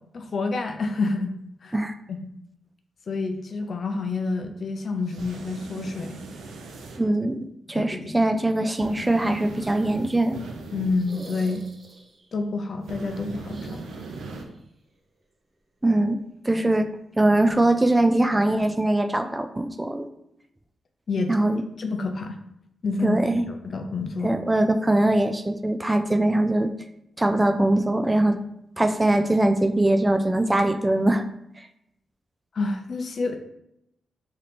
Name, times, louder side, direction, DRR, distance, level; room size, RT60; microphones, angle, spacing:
voice 1, 0.1-1.4 1.6-1.7 2.2-2.3 3.1-6.2 7.7-8.2 10.7-11.6 12.3-13.8 21.1-21.3 21.8-22.4 22.8-24.4 32.5-33.4, left 3 dB, 55° left, 6 dB, 0.5 m, -28 dB
sound 1, 5.1-7.0 8.8-11.1 12.9-14.4, right 3 dB, 85° right, 0.6 m, -39 dB
voice 2, 7.0-10.4 15.8-16.2 16.4-16.9 17.2-20.1 21.3-21.6 23.0-23.4 24.2-26.7 27.2-28.4 28.8-31.2 31.6-31.7, right 1 dB, 15° right, 8 dB, 0.3 m, -22 dB
sound 2, 10.9-12.3 13.4-14.6 14.9-15.0 16.6-16.7, right 2 dB, 35° right, 0.8 m, -46 dB
3.3 x 2.8 x 4.1 m, 0.79 s
cardioid pair, 85°, 0 cm